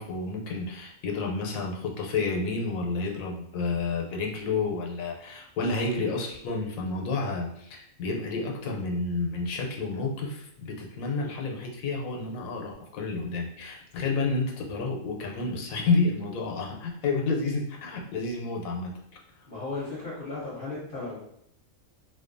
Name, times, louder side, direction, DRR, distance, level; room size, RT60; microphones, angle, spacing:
voice 1, 0.0-18.9, left 3 dB, 90° left, 0 dB, 1.0 m, -30 dB
voice 2, 19.5-21.2, left 3 dB, 50° left, -7 dB, 0.8 m, -35 dB
2.5 x 2.2 x 2.4 m, 0.73 s
omnidirectional pair, 1.4 m